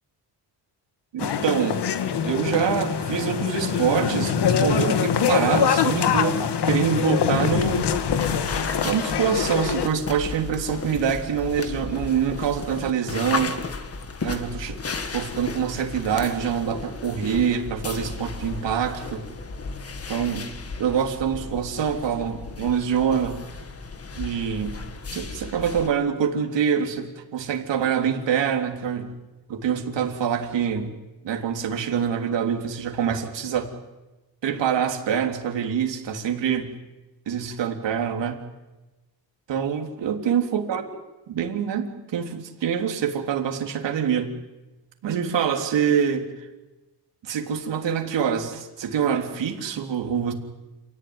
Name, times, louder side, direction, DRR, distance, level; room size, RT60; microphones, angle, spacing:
voice 1, 1.1-1.8 2.2-6.4 6.7-7.9 8.8-13.6 14.2-14.8 15.1-19.2 20.1-20.5 20.8-23.4 24.1-24.8 25.1-29.1 29.5-30.9 31.2-33.7 34.4-36.7 37.2-38.4 39.5-40.8 41.3-44.3 45.0-46.2 47.2-50.3, right 7 dB, 80° right, 3 dB, 3.4 m, -25 dB
sound 1, 1.2-9.9, left 7 dB, 65° left, 1.7 m, -24 dB
sound 2, 7.4-25.9, left 4 dB, 35° left, 1.8 m, -34 dB
28.5 x 17.5 x 9.7 m, 1.1 s
wide cardioid pair, 150°, 43 cm